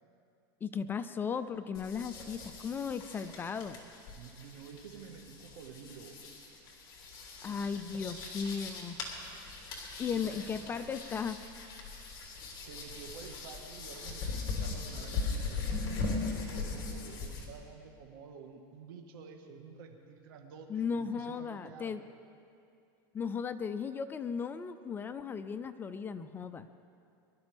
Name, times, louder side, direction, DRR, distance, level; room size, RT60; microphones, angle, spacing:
voice 1, 0.6-3.8 7.4-9.0 10.0-11.4 20.7-22.0 23.1-26.7, left 6 dB, 20° left, 11 dB, 0.4 m, -36 dB
sound 1, 1.7-17.5, left 4 dB, 35° left, 3.0 m, -40 dB
voice 2, 4.1-6.2 10.1-10.5 12.6-22.0, right 6 dB, 75° right, 3 dB, 1.7 m, -50 dB
23.5 x 12.5 x 3.5 m, 2.5 s
supercardioid pair, 145°, 12 cm